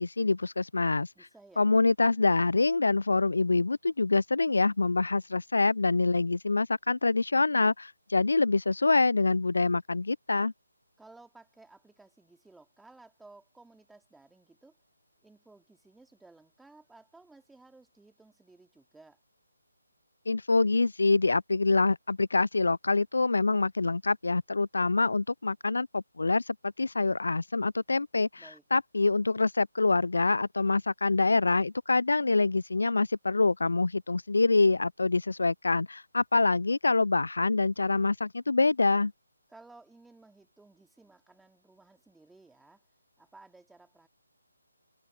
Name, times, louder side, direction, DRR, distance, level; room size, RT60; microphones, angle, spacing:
voice 1, 0.0-1.1 1.6-10.5 20.3-39.1, left 3 dB, 65° left, 0.5 m, -25 dB
voice 2, 1.1-1.7 11.0-14.8 15.2-19.2 28.4-28.6 39.5-42.8 43.2-44.1, right 3 dB, 5° right, 3.1 m, -56 dB
figure-of-eight pair, 145°, 0 cm